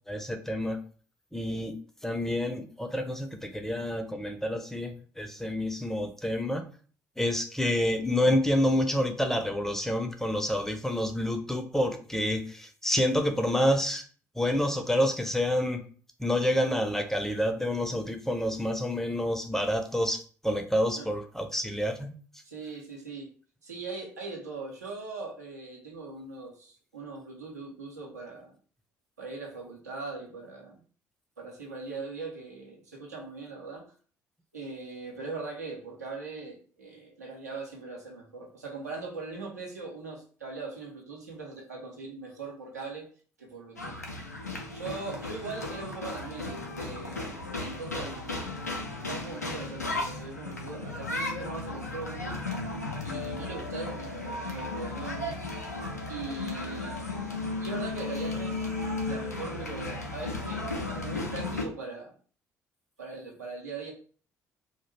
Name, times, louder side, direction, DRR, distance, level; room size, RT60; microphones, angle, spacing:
voice 1, 0.1-0.8 1.3-1.8 2.0-6.6 7.2-14.0 14.4-15.8 16.2-22.1, left 1 dB, 5° left, 5 dB, 0.5 m, -28 dB
voice 2, 22.4-23.3 23.6-28.5 29.2-30.8 31.4-33.8 34.5-43.1 43.4-44.0 44.7-48.4 49.0-52.4 53.0-55.4 56.1-57.1 57.6-58.7 59.1-62.1 63.0-63.9, right 3 dB, 85° right, -1 dB, 0.6 m, -40 dB
sound 1, 43.8-61.6, left 2 dB, 90° left, 0.3 m, -35 dB
2.3 x 2.1 x 3.1 m, 0.42 s
figure-of-eight pair, 45°, 9 cm